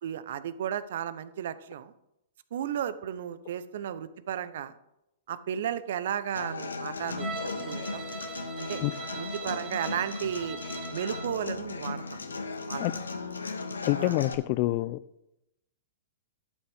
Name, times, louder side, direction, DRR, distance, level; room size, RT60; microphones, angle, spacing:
voice 1, 0.0-1.9 2.5-4.7 5.3-7.3 7.7-8.0 8.6-8.8 9.2-10.6 10.9-12.2 12.7-13.0 14.0-14.2, right 9 dB, 65° right, 15 dB, 0.7 m, -34 dB
Human voice / Acoustic guitar, 6.4-14.3, left 3 dB, 85° left, 1.0 m, -36 dB
Bowed string instrument, 7.2-11.4, right 5 dB, 30° right, 2.1 m, -41 dB
voice 2, 13.8-15.0, left 18 dB, 45° left, 18 dB, 0.5 m, -26 dB
11.5 x 8.4 x 3.6 m, 0.85 s
hypercardioid pair, 115°, 0 cm